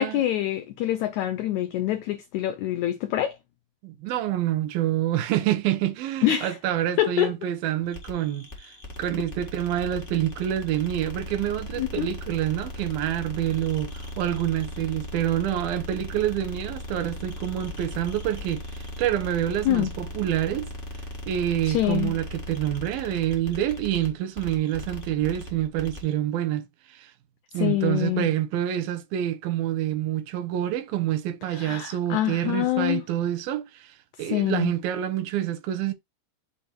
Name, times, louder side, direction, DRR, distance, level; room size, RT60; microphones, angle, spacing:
voice 1, 0.0-3.4 6.2-6.6 7.0-7.3 11.8-12.1 19.6-19.9 21.7-22.1 27.5-28.3 31.5-33.0 34.3-34.7, left 13 dB, 90° left, 1.6 m, -25 dB
voice 2, 3.8-8.5 9.0-20.7 21.3-27.1 27.5-35.9, right 12 dB, 90° right, 2.7 m, -27 dB
sound 1, 7.9-26.1, left 1 dB, 55° left, 0.6 m, -38 dB
7.0 x 2.8 x 5.1 m
omnidirectional pair, 4.0 m